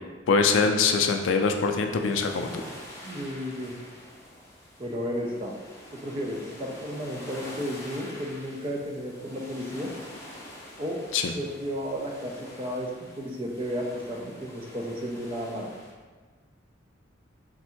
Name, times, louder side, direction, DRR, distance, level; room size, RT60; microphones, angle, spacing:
voice 1, 0.3-2.5 11.1-11.3, left 5 dB, 75° left, 5 dB, 0.4 m, -23 dB
sound 1, 0.8-15.9, left 1 dB, 15° left, 0.6 m, -46 dB
voice 2, 3.0-3.7 4.8-5.5 5.9-9.9 10.8-11.0 11.3-15.7, equal, 30° right, -1 dB, 0.5 m, -33 dB
3.5 x 2.6 x 4.3 m, 1.4 s
head